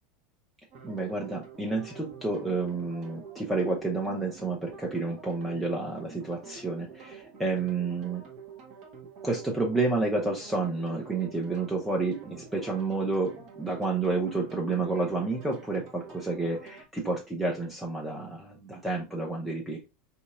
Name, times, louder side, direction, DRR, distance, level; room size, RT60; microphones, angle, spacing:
sound 1, 0.7-16.8, right 6 dB, 50° right, 1.2 m, -48 dB
voice 1, 0.8-8.2 9.2-19.9, right 3 dB, 5° right, -1 dB, 0.7 m, -30 dB
4.0 x 2.8 x 2.3 m, 0.27 s
figure-of-eight pair, 80°, 0 cm